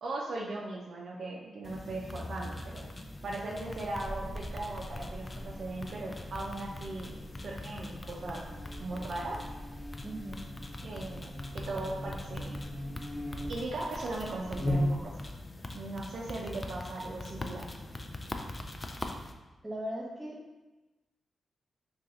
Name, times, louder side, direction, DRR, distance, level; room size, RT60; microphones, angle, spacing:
voice 1, 0.0-2.9 3.2-7.1 7.4-8.4 8.8-9.4 10.8-12.6 13.5-15.1 15.7-17.7, right 2 dB, 70° right, -3 dB, 0.4 m, -38 dB
sound 1, 1.6-19.3, left 2 dB, 30° left, 0.3 m, -43 dB
Buzz, 3.9-15.3, equal, ahead, 1.0 m, -39 dB
voice 2, 10.0-10.4 19.6-20.4, equal, 25° right, -1 dB, 0.9 m, -38 dB
2.6 x 2.3 x 3.8 m, 1.1 s
supercardioid pair, 45°, 0 cm